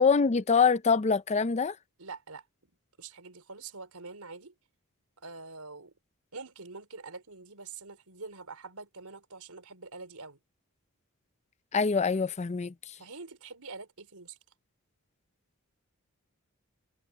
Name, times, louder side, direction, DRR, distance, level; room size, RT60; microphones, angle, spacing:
voice 1, 0.0-1.8 11.7-12.9, left 5 dB, 30° left, 0.5 m, -25 dB
voice 2, 2.0-2.7 3.0-4.5 5.2-5.9 6.3-10.4 13.0-14.4, right 4 dB, 85° right, 4.2 m, -45 dB
head